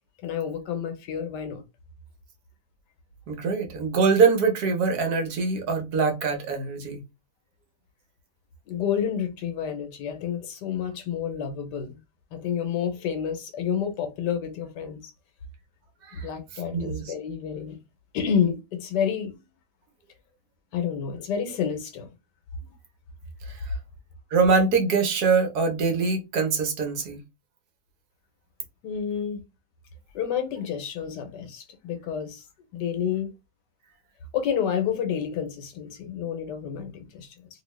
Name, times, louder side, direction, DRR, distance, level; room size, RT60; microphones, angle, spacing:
voice 1, 0.2-1.6 8.7-12.0 12.3-15.1 16.1-17.8 18.1-19.4 20.7-22.1 22.6-22.7 28.8-29.4 30.1-32.4 32.7-33.3 34.3-37.3, left 8 dB, 85° left, 1.4 m, -29 dB
voice 2, 3.3-7.0 16.0-16.3 16.7-17.1 24.3-27.2, right 5 dB, 70° right, 1.3 m, -23 dB
2.9 x 2.8 x 3.1 m
omnidirectional pair, 1.8 m